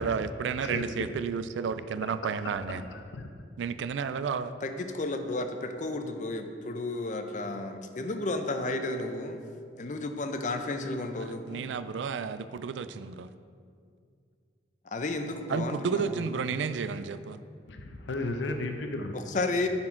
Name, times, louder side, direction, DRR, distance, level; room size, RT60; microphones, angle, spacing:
voice 1, 0.0-2.9 3.6-4.5 11.2-13.3 15.5-17.4, right 6 dB, 80° right, 13 dB, 0.3 m, -32 dB
voice 2, 0.6-1.1 2.4-3.3 17.7-19.1, left 2 dB, 80° left, 5 dB, 0.7 m, -35 dB
voice 3, 4.6-9.4 9.8-11.7 14.9-16.3 19.1-19.7, left 2 dB, 45° left, 7 dB, 0.5 m, -32 dB
9.6 x 4.4 x 4.5 m, 2.2 s
head